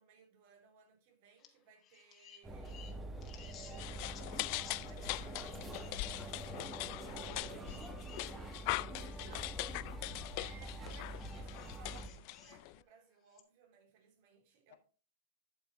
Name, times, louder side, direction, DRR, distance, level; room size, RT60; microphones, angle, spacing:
voice 1, 0.0-2.8 3.4-6.1 9.1-9.8 10.4-14.8, right 5 dB, 60° right, 3.1 m, -61 dB
sound 1, 1.4-1.5 1.8-5.1 5.5-5.9 7.2-8.3 9.0-9.1 11.1-12.6 13.3-13.4, left 9 dB, 30° left, 1.8 m, -58 dB
sound 2, 2.4-12.1, right 2 dB, 15° right, 1.4 m, -46 dB
sound 3, 3.8-12.8, left 22 dB, 50° left, 0.3 m, -42 dB
voice 2, 7.1-8.2 8.8-9.5 14.7-14.8, left 8 dB, 65° left, 2.0 m, -57 dB
11.5 x 7.0 x 3.0 m
supercardioid pair, 140°, 0 cm